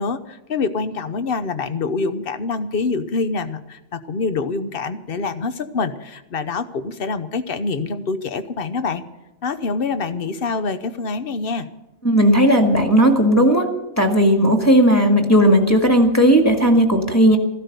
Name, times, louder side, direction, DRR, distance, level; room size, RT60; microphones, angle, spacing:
voice 1, 0.0-9.0 9.4-11.7, left 4 dB, 50° left, 12 dB, 1.0 m, -25 dB
voice 2, 12.0-13.7 14.0-17.4, equal, 10° left, 4 dB, 2.0 m, -15 dB
15.0 x 12.0 x 6.8 m, 0.98 s
omnidirectional pair, 1.3 m